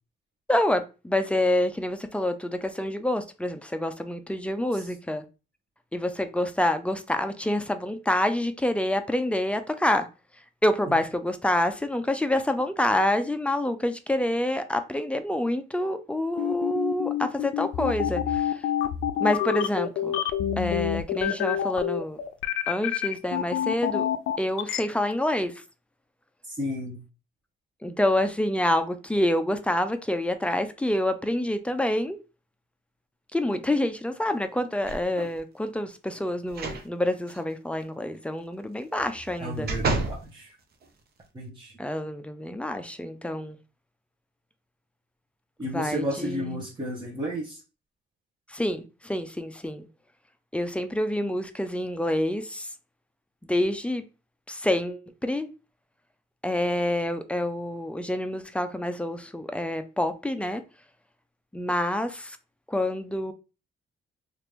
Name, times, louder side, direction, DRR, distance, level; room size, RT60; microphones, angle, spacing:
voice 1, 0.5-5.2 5.9-10.1 10.6-18.7 19.2-20.2 20.6-22.2 22.7-24.1 24.4-25.5 27.8-32.2 33.3-39.7 41.8-43.6 45.7-46.6 48.5-49.9 50.5-52.7 53.5-54.0 54.5-55.5 56.4-60.6 61.5-62.4 62.7-63.3, left 1 dB, 5° left, 0.4 m, -27 dB
sound 1, 16.4-24.8, left 10 dB, 80° left, 0.4 m, -27 dB
voice 2, 26.5-27.0 39.4-40.5 41.3-41.7 45.6-47.6, equal, 25° right, 0.8 m, -32 dB
sound 2, 34.8-35.4 36.5-36.9 37.3-37.4 39.0-40.2 40.8-40.9, right 3 dB, 50° right, 0.7 m, -30 dB
2.9 x 2.5 x 3.3 m
cardioid pair, 90°, 20 cm